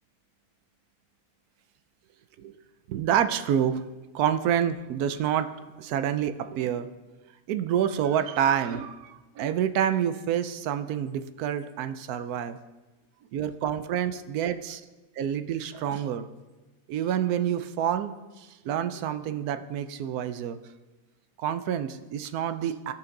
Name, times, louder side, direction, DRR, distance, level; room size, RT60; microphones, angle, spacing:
voice 1, 2.9-3.8 4.1-5.5 5.8-6.9 7.5-12.6 13.3-14.8 15.2-16.3 16.9-18.1 18.6-20.6 21.4-22.9, right 9 dB, 85° right, 11 dB, 1.1 m, -28 dB
16.0 x 5.8 x 3.8 m, 1.2 s
omnidirectional pair, 1.5 m